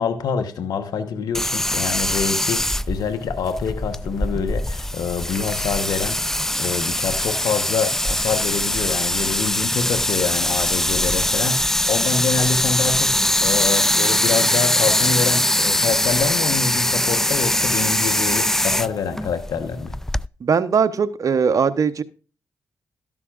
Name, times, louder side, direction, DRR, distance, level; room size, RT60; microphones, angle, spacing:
voice 1, 0.0-19.9, left 6 dB, 80° left, 1.2 m, -26 dB
sound 1, 1.3-20.3, left 1 dB, 5° left, 0.4 m, -22 dB
voice 2, 20.4-22.0, right 6 dB, 60° right, 1.0 m, -19 dB
13.0 x 11.0 x 2.5 m
supercardioid pair, 50°, 7 cm